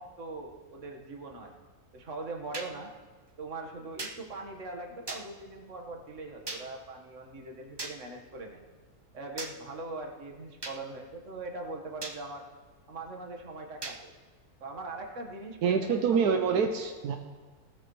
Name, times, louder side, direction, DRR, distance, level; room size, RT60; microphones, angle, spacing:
voice 1, 0.0-1.5 1.9-2.9 3.4-8.6 9.1-12.5 12.9-14.1 14.6-16.5, right 2 dB, 50° right, 2 dB, 1.7 m, -41 dB
sound 1, 2.5-2.7 4.0-4.2 5.1-5.2 6.5-6.6 7.8-7.9 9.4-9.5 10.6-10.8 12.0-12.2 13.8-14.0, right 2 dB, 25° right, 0.6 m, -37 dB
voice 2, 15.6-17.2, right 6 dB, 80° right, 4 dB, 1.3 m, -26 dB
18.5 x 13.0 x 3.1 m, 1.4 s
omnidirectional pair, 1.6 m